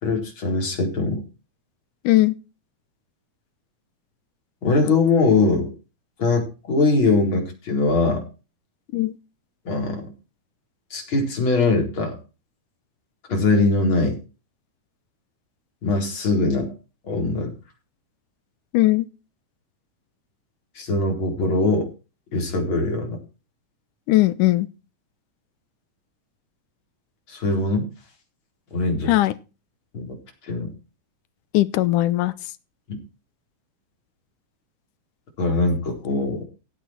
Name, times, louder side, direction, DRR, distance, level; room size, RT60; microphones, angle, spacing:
voice 1, 0.0-1.2 4.6-5.7 6.2-8.2 9.6-10.1 10.9-12.2 13.3-14.2 15.8-16.7 17.1-17.5 20.8-21.9 22.3-23.2 27.3-27.9 28.7-29.1 29.9-30.1 30.5-30.7 35.4-36.5, left 3 dB, 35° left, 2 dB, 4.9 m, -21 dB
voice 2, 18.7-19.1 24.1-24.7 29.1-29.3 31.5-32.3, left 17 dB, 80° left, 16 dB, 2.3 m, -18 dB
16.5 x 8.4 x 4.5 m, 0.32 s
omnidirectional pair, 3.8 m